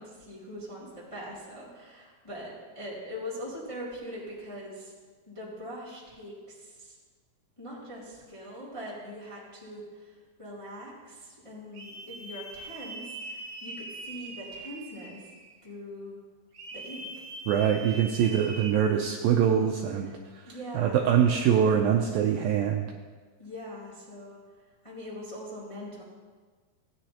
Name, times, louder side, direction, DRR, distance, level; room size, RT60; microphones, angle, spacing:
voice 1, 0.0-4.9 5.2-6.9 7.6-15.2 15.6-16.2 16.7-17.2 18.2-18.5 20.0-20.2 20.4-21.2 23.4-24.4 24.8-26.0, equal, 10° left, -7 dB, 1.5 m, -42 dB
sound 1, 11.7-15.6 16.5-18.7, right 2 dB, 50° right, 2.0 m, -42 dB
voice 2, 17.5-20.1 20.7-22.9, right 8 dB, 80° right, 2 dB, 2.1 m, -24 dB
16.0 x 9.6 x 2.9 m, 1.4 s
omnidirectional pair, 4.7 m